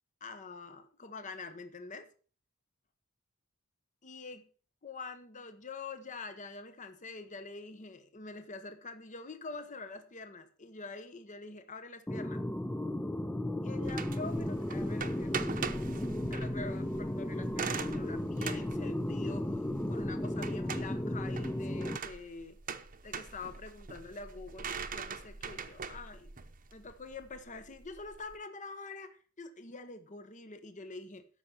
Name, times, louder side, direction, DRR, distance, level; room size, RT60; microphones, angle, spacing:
voice 1, 0.2-2.1 4.0-4.5 4.8-12.4 13.6-15.4 16.3-22.6 23.0-26.4 26.7-31.3, left 3 dB, 35° left, 9 dB, 0.9 m, -45 dB
sound 1, 12.1-22.0, left 1 dB, 10° left, 0.4 m, -35 dB
sound 2, 13.8-28.3, right 5 dB, 40° right, 0.9 m, -42 dB
13.0 x 5.6 x 6.1 m, 0.40 s
head